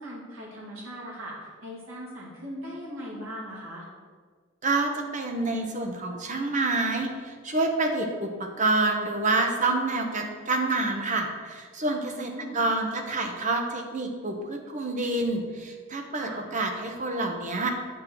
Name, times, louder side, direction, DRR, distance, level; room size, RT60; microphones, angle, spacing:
voice 1, 0.0-3.9 12.2-12.6 16.2-16.4, equal, 85° right, -5 dB, 2.7 m, -39 dB
voice 2, 4.6-17.7, right 2 dB, 35° right, 3 dB, 1.0 m, -28 dB
8.4 x 6.2 x 4.6 m, 1.5 s
head